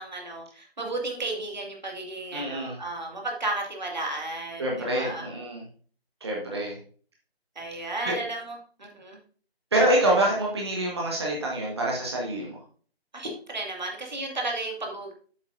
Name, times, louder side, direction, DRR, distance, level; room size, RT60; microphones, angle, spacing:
voice 1, 0.0-5.3 7.6-9.2 13.1-15.1, right 2 dB, 45° right, 0 dB, 2.1 m, -33 dB
voice 2, 2.3-2.8 4.6-5.6 6.2-6.8 7.7-8.1 9.7-12.6, right 1 dB, 25° right, -3 dB, 1.4 m, -26 dB
8.4 x 7.9 x 2.6 m, 0.44 s
figure-of-eight pair, 160°, 31 cm